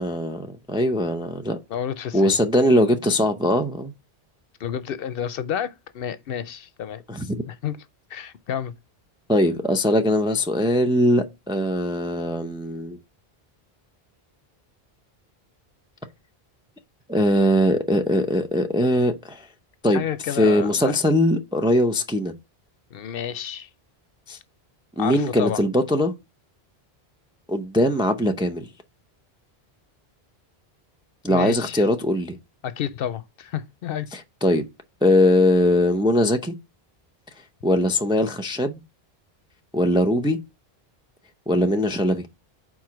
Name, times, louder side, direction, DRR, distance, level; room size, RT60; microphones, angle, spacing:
voice 1, 0.0-1.6 2.1-3.9 7.1-7.4 9.3-13.0 17.1-19.4 19.8-20.0 20.3-22.3 24.3-24.4 25.0-26.1 27.5-28.7 31.2-32.4 34.1-34.6 35.0-36.5 37.6-38.8 39.7-40.4 41.5-42.2, left 1 dB, 5° right, 0.4 m, -21 dB
voice 2, 1.7-2.4 4.6-7.0 7.5-7.8 8.1-8.7 19.9-21.0 22.9-23.7 25.0-25.6 31.3-31.9 32.6-34.1, left 9 dB, 70° left, 0.7 m, -30 dB
4.7 x 4.2 x 5.8 m
omnidirectional pair, 1.0 m